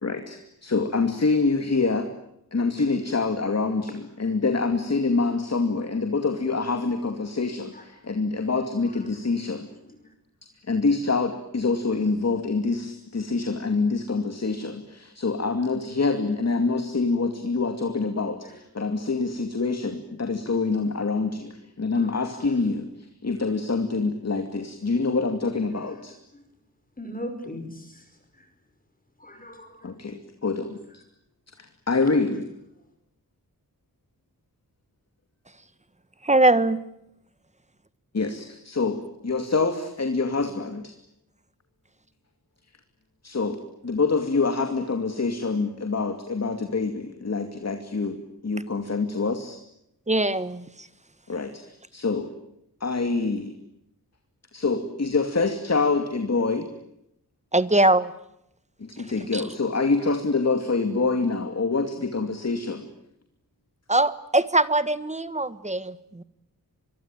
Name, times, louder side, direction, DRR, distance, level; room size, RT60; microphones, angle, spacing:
voice 1, 0.0-2.1 2.5-9.7 10.7-26.1 29.8-30.8 31.6-32.4 38.1-40.9 43.2-43.6 43.8-49.6 51.3-51.6 51.9-52.3 52.8-53.5 54.5-56.7 58.8-62.9, left 3 dB, 45° left, 7 dB, 2.5 m, -26 dB
voice 2, 9.8-10.1 18.4-18.6 18.9-19.1 21.9-22.4 25.7-26.0 26.3-26.4 27.0-28.5 29.2-29.9, equal, 25° left, 6 dB, 5.0 m, -40 dB
voice 3, 36.2-36.8 50.1-50.7 57.5-58.1 59.3-59.4 63.9-66.2, right 2 dB, 20° right, 15 dB, 1.4 m, -21 dB
25.5 x 23.5 x 9.1 m, 0.79 s
wide cardioid pair, 115°, 36 cm